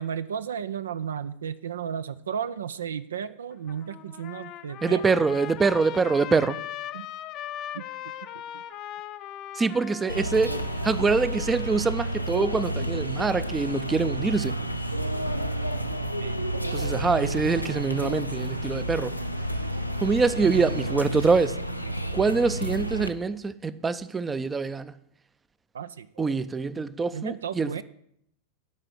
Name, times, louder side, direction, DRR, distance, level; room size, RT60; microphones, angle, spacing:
voice 1, 0.0-5.0 6.9-7.1 7.7-7.9 8.5-8.6 16.2-16.4 19.3-19.6 20.4-20.8 25.7-26.3 27.1-27.8, right 8 dB, 65° right, 0.4 m, -34 dB
Trumpet, 3.5-11.9, left 12 dB, 35° left, 0.6 m, -40 dB
voice 2, 4.8-6.6 9.5-14.6 16.7-19.1 20.0-21.6 22.1-24.9 26.2-27.8, right 4 dB, 15° right, 0.5 m, -25 dB
sound 1, 10.1-23.1, right 1 dB, 90° left, 0.6 m, -30 dB
11.5 x 5.8 x 7.7 m
figure-of-eight pair, 90°, 0 cm